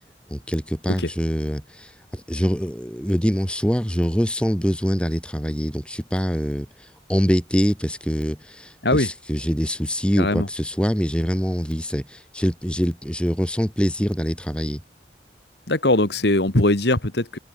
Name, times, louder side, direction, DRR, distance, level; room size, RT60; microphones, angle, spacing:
voice 1, 0.3-14.8, equal, 5° left, 3.2 m, -24 dB
voice 2, 10.2-10.5 15.7-17.4, left 2 dB, 65° left, 2.2 m, -20 dB
head